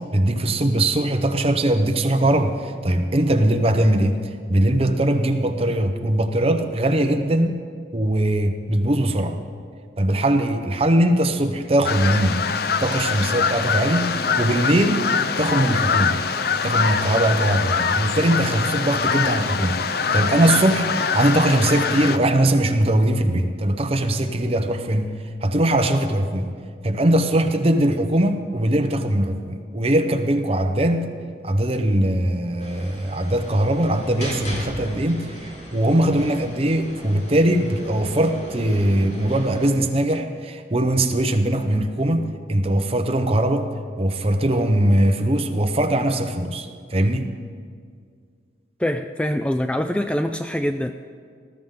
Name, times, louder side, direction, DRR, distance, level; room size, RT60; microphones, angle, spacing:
voice 1, 0.1-7.6 7.9-9.4 10.0-12.4 12.8-15.1 15.4-16.2 16.6-25.1 25.4-26.5 26.8-31.1 31.4-43.7 44.0-47.3, right 1 dB, 35° right, 6 dB, 0.9 m, -21 dB
sound 1, 11.8-22.2, left 5 dB, 60° left, 0.6 m, -23 dB
sound 2, 32.6-39.7, equal, 40° left, 3.3 m, -37 dB
voice 2, 48.8-50.9, left 1 dB, 5° left, 8 dB, 0.3 m, -24 dB
19.5 x 13.0 x 3.8 m, 2.1 s
head